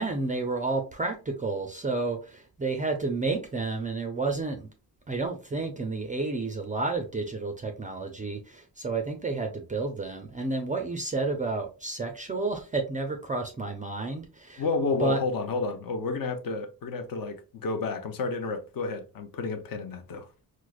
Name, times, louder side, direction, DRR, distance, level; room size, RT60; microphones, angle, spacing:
voice 1, 0.0-4.7 5.1-14.7 15.0-15.2, right 3 dB, 20° right, 0.3 m, -31 dB
voice 2, 14.6-20.3, left 3 dB, 60° left, 0.6 m, -31 dB
4.6 x 2.0 x 2.3 m
wide cardioid pair, 145°, 39 cm